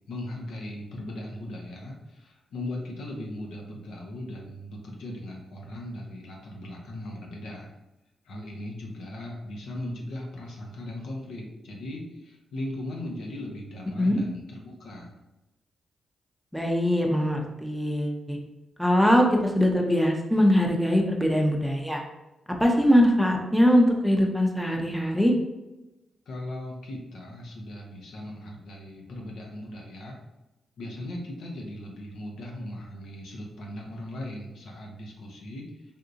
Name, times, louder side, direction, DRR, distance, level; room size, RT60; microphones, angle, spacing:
voice 1, 0.1-7.7 8.2-15.2 26.3-30.2 30.8-35.7, left 1 dB, 80° left, 0 dB, 0.7 m, -38 dB
voice 2, 16.5-18.4 18.8-22.0 22.6-25.3, equal, ahead, 1 dB, 0.6 m, -22 dB
3.5 x 2.7 x 2.5 m, 0.98 s
supercardioid pair, 60°, 0 cm